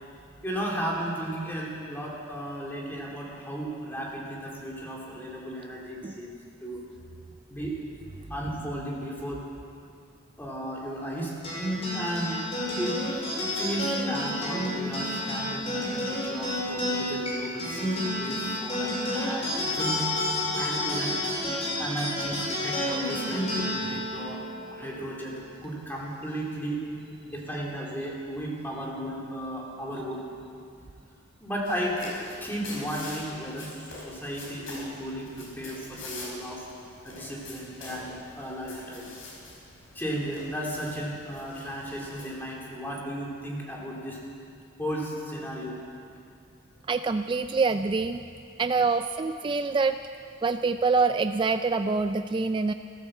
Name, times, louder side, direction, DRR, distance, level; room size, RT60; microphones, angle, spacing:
voice 1, 0.4-6.3 6.6-6.8 7.5-7.8 8.3-9.4 10.4-11.3 11.9-12.4 12.8-13.0 13.6-20.1 20.6-21.1 21.8-24.4 24.7-26.8 27.2-30.2 31.4-32.0 32.4-36.6 37.0-39.1 39.9-44.2 44.8-45.8, equal, 10° left, -3 dB, 2.5 m, -34 dB
sound 1, 11.4-26.2, left 1 dB, 30° left, 4.6 m, -30 dB
sound 2, 31.6-42.2, left 2 dB, 80° left, 4.6 m, -44 dB
voice 2, 46.9-48.2 48.6-50.0 50.4-52.7, right 4 dB, 25° right, 9 dB, 0.3 m, -25 dB
14.0 x 14.0 x 7.5 m, 2.4 s
head